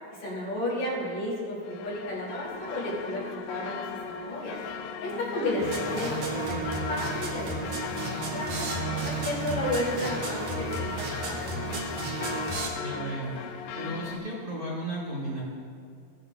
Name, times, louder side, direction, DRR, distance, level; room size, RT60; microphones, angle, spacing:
voice 1, 0.1-4.6 5.0-8.7 9.0-11.9, left 1 dB, 60° left, -6 dB, 4.3 m, -33 dB
sound 1, 1.6-14.2, left 6 dB, 85° left, 2.2 m, -38 dB
sound 2, 5.6-12.7, right 3 dB, 75° right, 3.0 m, -33 dB
voice 2, 12.7-13.3 13.7-15.4, right 1 dB, 30° right, -8 dB, 2.6 m, -34 dB
17.0 x 10.5 x 2.5 m, 2.2 s
omnidirectional pair, 3.6 m